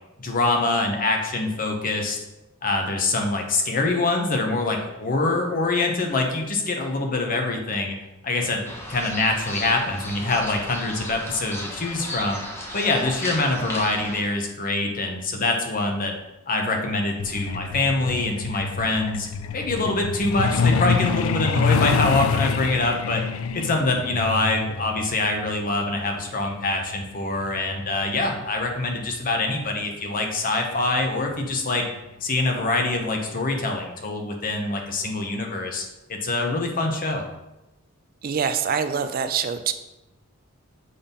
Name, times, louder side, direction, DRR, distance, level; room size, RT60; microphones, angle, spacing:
voice 1, 0.2-2.2 2.6-8.0 8.2-8.6 8.9-12.4 12.7-16.1 16.5-19.3 19.5-23.2 23.5-31.8 32.2-35.8 36.1-37.3, left 2 dB, 45° left, 2 dB, 1.1 m, -24 dB
sound 1, 8.6-14.2, left 1 dB, 10° left, 1.1 m, -35 dB
Truck, 17.2-29.5 30.7-30.9 31.3-31.5 31.8-32.1 32.4-32.5 33.0-33.1, left 5 dB, 80° left, 0.4 m, -27 dB
voice 2, 38.2-39.7, right 7 dB, 45° right, 9 dB, 0.4 m, -25 dB
6.8 x 3.6 x 5.4 m, 0.94 s
head